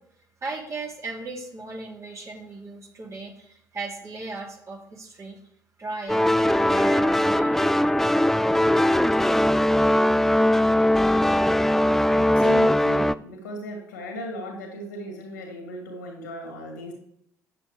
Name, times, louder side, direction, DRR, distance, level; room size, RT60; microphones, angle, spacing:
voice 1, 0.4-5.4 5.8-7.7, right 3 dB, 30° right, -1 dB, 2.9 m, -37 dB
sound 1, 6.1-13.1, left 1 dB, 5° left, 0.3 m, -20 dB
voice 2, 12.1-16.9, left 1 dB, 80° left, 2 dB, 2.8 m, -36 dB
10.5 x 7.9 x 3.3 m, 0.71 s
figure-of-eight pair, 50°, 9 cm